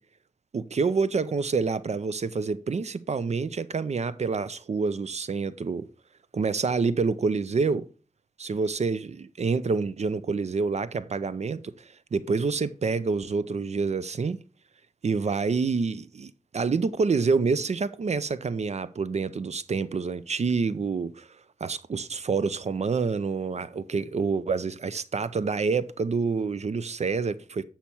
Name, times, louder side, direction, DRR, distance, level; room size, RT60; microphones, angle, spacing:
voice 1, 0.5-5.9 6.3-7.9 8.4-14.4 15.0-21.3 21.6-27.6, right 4 dB, 55° right, 0.5 m, -27 dB
8.5 x 5.7 x 4.4 m
wide cardioid pair, 95°, 13 cm